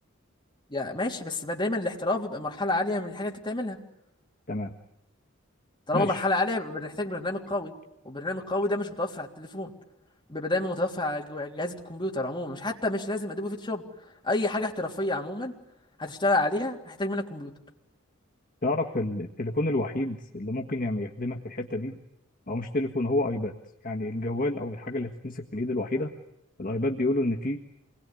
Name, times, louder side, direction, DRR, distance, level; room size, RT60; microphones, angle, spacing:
voice 1, 0.7-3.8 5.9-7.7 8.0-9.7 10.3-13.8 14.2-15.5 16.0-17.5, left 2 dB, 25° left, 0 dB, 3.3 m, -29 dB
voice 2, 5.9-6.3 18.6-22.0 22.5-23.5 23.8-26.1 26.6-27.6, left 2 dB, 45° left, 1 dB, 1.7 m, -29 dB
28.0 x 21.5 x 10.0 m, 0.85 s
head